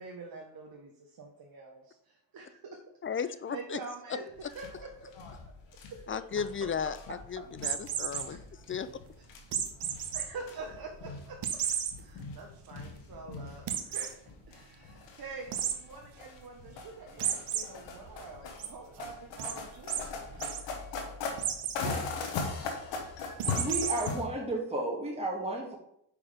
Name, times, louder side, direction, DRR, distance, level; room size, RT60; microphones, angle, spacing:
voice 1, 0.0-2.8 3.1-5.1 5.9-6.0 8.3-8.4 10.1-11.4 12.0-14.1 14.5-20.4 21.8-22.1, right 4 dB, 55° right, 1 dB, 1.1 m, -46 dB
voice 2, 3.0-3.8 6.1-8.4 8.7-8.9, left 7 dB, 30° left, 14 dB, 0.5 m, -35 dB
sound 1, 4.4-24.3, left 4 dB, 90° left, 1.1 m, -41 dB
sound 2, 7.6-8.2 9.5-10.2 10.7-10.8 11.4-11.9 12.4-12.5 12.8-12.9 13.7-14.1 15.5-15.7 17.2-17.6 18.1-18.7 19.4-19.5 19.9-20.0 20.3-20.6 21.4-21.8 23.4-24.1, right 9 dB, 70° right, 1.0 m, -32 dB
voice 3, 23.5-25.8, right 1 dB, 15° right, -1 dB, 1.7 m, -33 dB
5.1 x 4.8 x 4.9 m, 0.73 s
supercardioid pair, 55°, 42 cm